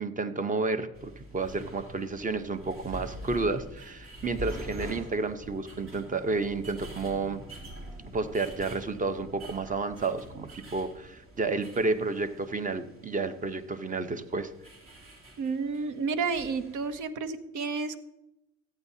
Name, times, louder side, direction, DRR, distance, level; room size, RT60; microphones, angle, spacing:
voice 1, 0.0-7.4 8.1-14.5, right 3 dB, 25° right, 11 dB, 0.9 m, -31 dB
sound 1, 0.9-17.0, right 1 dB, 45° right, 2.7 m, -45 dB
voice 2, 15.4-18.0, right 4 dB, 80° right, 11 dB, 0.9 m, -31 dB
14.0 x 9.1 x 2.8 m, 0.89 s
cardioid pair, 90°, 30 cm